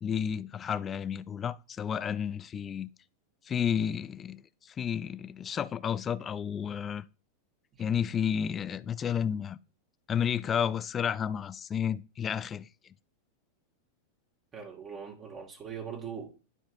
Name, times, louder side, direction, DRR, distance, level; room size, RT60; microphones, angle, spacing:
voice 1, 0.0-2.9 3.5-4.4 4.8-7.0 7.8-9.6 10.1-12.7, left 8 dB, 25° left, 0.4 m, -31 dB
voice 2, 14.5-16.3, right 7 dB, 25° right, 2.0 m, -41 dB
12.5 x 4.4 x 2.6 m
figure-of-eight pair, 90°, 0 cm